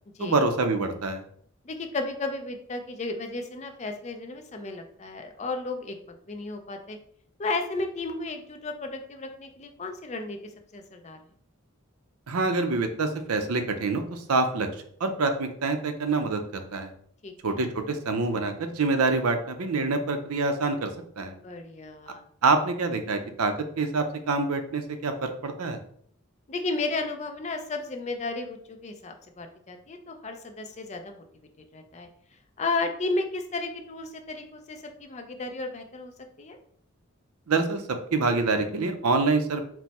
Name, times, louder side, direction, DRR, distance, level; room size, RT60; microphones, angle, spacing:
voice 1, 0.2-1.2 12.3-14.7 15.0-16.9 17.4-21.3 22.4-25.8 37.5-37.8 38.1-39.6, right 3 dB, 85° right, 7 dB, 0.6 m, -26 dB
voice 2, 1.6-7.0 7.4-11.2 17.2-17.6 21.4-22.2 26.5-31.2 31.7-32.1 32.6-36.1 36.4-36.6, left 3 dB, 30° left, 5 dB, 0.5 m, -33 dB
4.4 x 2.1 x 4.1 m, 0.62 s
head